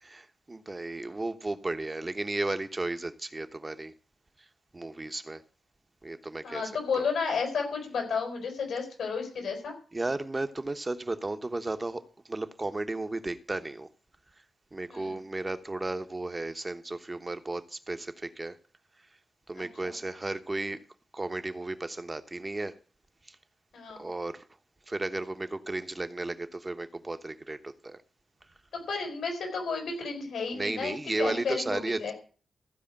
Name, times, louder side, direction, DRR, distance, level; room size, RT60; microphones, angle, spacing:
voice 1, 0.0-3.9 4.7-5.4 6.0-6.6 7.0-7.1 9.9-12.0 12.3-13.9 14.7-18.6 19.5-20.8 21.1-22.7 23.3-23.4 24.0-24.4 24.9-28.0 30.5-32.1, right 2 dB, 25° right, 1.1 m, -34 dB
voice 2, 6.4-9.7 14.9-15.2 19.6-19.9 23.7-24.0 28.9-32.1, left 5 dB, 90° left, 5.3 m, -32 dB
15.0 x 5.0 x 8.8 m
cardioid pair, 85°, 0 cm